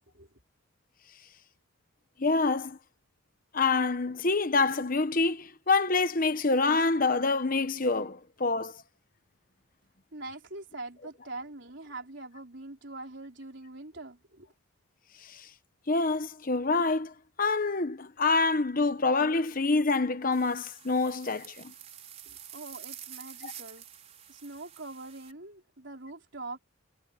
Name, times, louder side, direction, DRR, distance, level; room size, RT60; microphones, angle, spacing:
voice 1, 2.2-2.8 3.5-8.8 15.2-15.5 15.9-17.1 17.4-21.7 23.4-23.5, left 3 dB, 40° left, 1.0 m, -26 dB
voice 2, 10.1-14.5 22.3-23.8 24.3-26.6, right 2 dB, 55° right, 4.4 m, -43 dB
sound 1, 20.3-25.3, right 10 dB, 30° right, 5.3 m, -48 dB
head